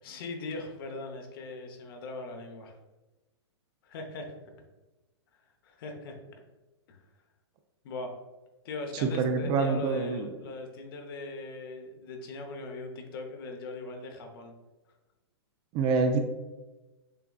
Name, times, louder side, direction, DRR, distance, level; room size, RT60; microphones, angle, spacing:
voice 1, 0.0-2.8 3.8-4.4 5.6-6.2 6.9-7.0 7.8-8.1 8.6-14.5, left 2 dB, 55° left, 3 dB, 0.8 m, -40 dB
voice 2, 9.0-10.2 15.7-16.2, right 4 dB, 30° right, 6 dB, 0.4 m, -26 dB
6.7 x 2.3 x 2.3 m, 1.1 s
hypercardioid pair, 120°, 14 cm